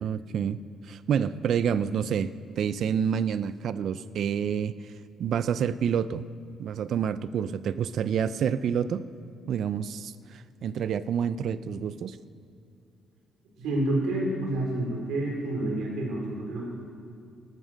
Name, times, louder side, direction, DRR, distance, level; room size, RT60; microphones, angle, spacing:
voice 1, 0.0-0.6 0.8-4.9 5.2-6.2 6.6-9.0 9.5-12.2, right 8 dB, 60° right, 15 dB, 0.4 m, -28 dB
voice 2, 13.6-16.7, right 1 dB, 85° right, -1 dB, 4.2 m, -29 dB
13.0 x 13.0 x 6.4 m, 2.5 s
cardioid pair, 125°, 0 cm